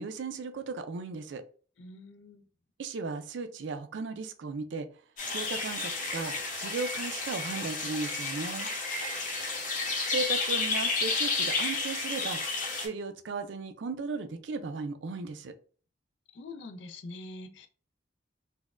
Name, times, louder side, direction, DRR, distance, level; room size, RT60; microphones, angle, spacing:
voice 1, 0.0-1.4 2.8-4.9 5.3-8.7 10.1-12.4 12.7-15.5, right 4 dB, 70° right, 9 dB, 0.4 m, -36 dB
voice 2, 1.8-2.4 8.9-9.4 16.3-17.7, left 2 dB, 70° left, 8 dB, 0.4 m, -45 dB
sound 1, 5.2-12.9, left 3 dB, 40° left, 0.9 m, -31 dB
4.0 x 2.2 x 2.4 m, 0.41 s
head